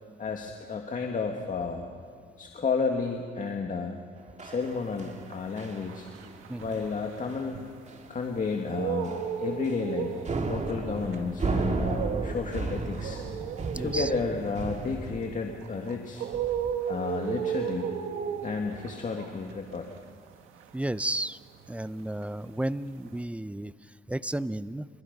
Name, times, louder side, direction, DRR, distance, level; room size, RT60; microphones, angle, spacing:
voice 1, 0.2-1.9 2.4-4.0 4.4-6.1 6.6-7.6 8.1-13.2 13.8-16.3 16.9-17.9 18.4-19.9, left 4 dB, 40° left, 2 dB, 1.9 m, -32 dB
sound 1, 4.4-5.3 5.6-5.9 6.1-6.4 6.7-6.9 7.3-7.4 7.9-8.2 8.5-8.6 9.0-9.9 10.2-15.2, right 3 dB, 35° right, 2.2 m, -34 dB
sound 2, 4.9-8.1 8.5-21.9 22.2-23.2, right 8 dB, 90° right, 1.7 m, -35 dB
voice 2, 13.7-14.1 16.4-16.7 20.7-21.4 21.7-24.9, right 1 dB, 5° right, 16 dB, 0.6 m, -33 dB
28.5 x 23.5 x 5.4 m, 2.3 s
cardioid pair, 90°, 20 cm